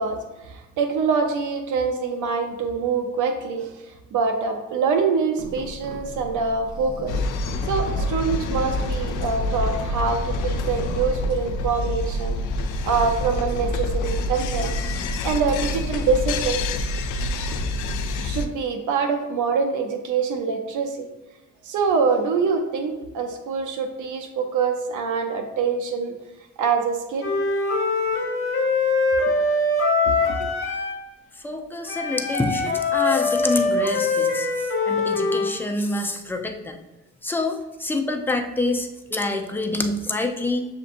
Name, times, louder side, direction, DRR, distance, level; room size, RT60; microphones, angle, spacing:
voice 1, 0.0-7.2 7.6-12.4 12.8-14.8 15.2-16.6 18.2-21.1 21.6-26.1 26.6-27.3 30.0-30.5, right 5 dB, 80° right, 5 dB, 0.7 m, -25 dB
sound 1, 5.4-18.1, right 1 dB, 50° right, 1.3 m, -38 dB
sound 2, 7.1-18.5, left 2 dB, 85° left, 0.5 m, -27 dB
Wind instrument woodwind instrument, 27.2-31.0 31.9-35.5, left 3 dB, 45° left, 1.1 m, -23 dB
voice 2, 31.4-36.8 37.2-40.7, left 2 dB, 5° left, 3 dB, 0.5 m, -27 dB
6.7 x 2.6 x 2.5 m, 1.1 s
cardioid pair, 90°, 30 cm